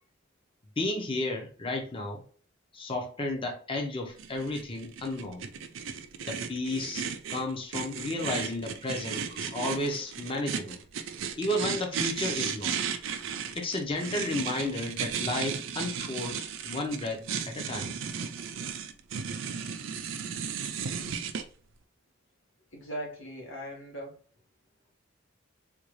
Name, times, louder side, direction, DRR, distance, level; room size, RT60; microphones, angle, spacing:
voice 1, 0.8-2.2 2.7-5.4 6.3-10.8 11.4-12.8 13.5-17.9, left 2 dB, 25° left, 0.7 m, -33 dB
sound 1, 4.2-21.4, right 7 dB, 75° right, 0.4 m, -35 dB
voice 2, 22.7-24.1, equal, 75° left, 1.2 m, -39 dB
3.7 x 2.3 x 3.1 m
head